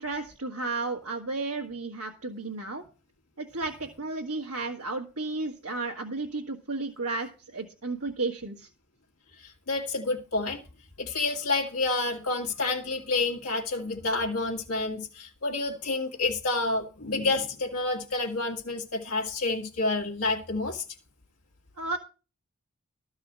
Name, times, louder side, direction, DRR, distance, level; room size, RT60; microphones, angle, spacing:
voice 1, 0.0-2.8 3.4-8.7 21.8-22.0, right 3 dB, 85° right, 1.6 m, -33 dB
voice 2, 9.4-10.6 11.0-20.8, left 3 dB, 80° left, 2.1 m, -29 dB
13.0 x 4.8 x 7.4 m
head